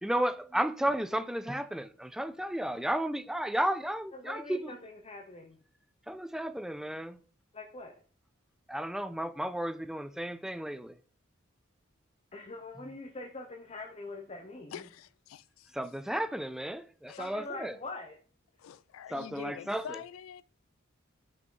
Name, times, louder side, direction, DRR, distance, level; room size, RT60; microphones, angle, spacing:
voice 1, 0.0-4.8 6.1-7.2 8.7-11.0 12.8-12.9 15.7-17.8 19.1-20.0, right 1 dB, 5° right, 0.3 m, -33 dB
voice 2, 4.1-5.6 7.5-7.9 12.3-14.9 17.2-18.2, left 2 dB, 30° left, 0.7 m, -43 dB
voice 3, 14.7-15.7 17.1-17.3 18.6-20.4, left 8 dB, 80° left, 0.3 m, -45 dB
5.9 x 5.0 x 3.8 m
head